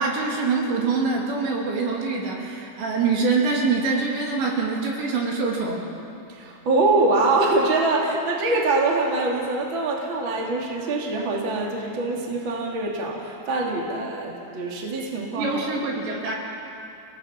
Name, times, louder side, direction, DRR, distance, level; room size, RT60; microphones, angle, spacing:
voice 1, 0.0-5.8 15.4-16.4, right 4 dB, 65° right, -2 dB, 4.9 m, -24 dB
voice 2, 6.3-15.6, right 2 dB, 30° right, -2 dB, 2.6 m, -24 dB
30.0 x 18.5 x 6.0 m, 2.6 s
omnidirectional pair, 5.6 m